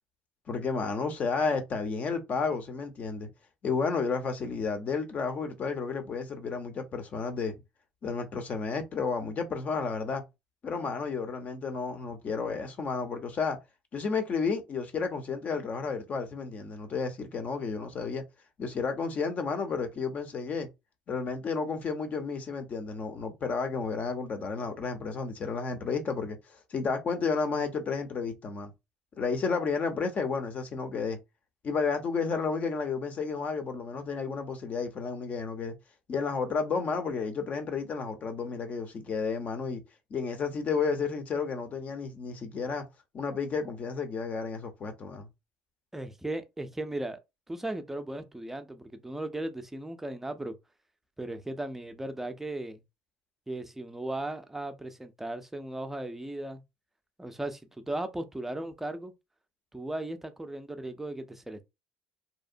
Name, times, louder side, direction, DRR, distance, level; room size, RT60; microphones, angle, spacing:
voice 1, 0.5-3.3 3.6-7.5 8.0-10.2 10.6-13.6 13.9-18.2 18.6-20.7 21.1-28.7 29.2-31.2 31.6-35.7 36.1-39.8 40.1-42.8 43.1-45.3, left 5 dB, 40° left, 0.6 m, -32 dB
voice 2, 45.9-47.2 47.5-50.6 51.2-52.8 53.5-56.6 57.2-59.1 59.7-61.6, right 1 dB, 10° right, 0.4 m, -36 dB
2.7 x 2.0 x 2.5 m
supercardioid pair, 100°, 4 cm